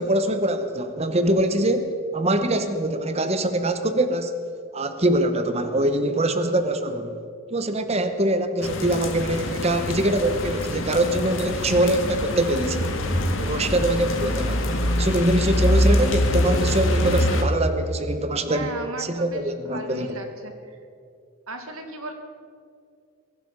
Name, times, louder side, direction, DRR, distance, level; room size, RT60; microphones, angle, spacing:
voice 1, 0.0-1.9 2.1-4.3 4.7-7.2 7.5-12.8 13.4-14.7 15.0-18.7 19.0-20.1, right 1 dB, 30° right, 8 dB, 0.9 m, -23 dB
sound 1, 8.6-17.4, left 1 dB, 65° left, 1.7 m, -24 dB
voice 2, 18.5-20.8 21.5-22.1, right 2 dB, 90° right, 5 dB, 2.0 m, -36 dB
22.0 x 11.5 x 5.4 m, 2.4 s
head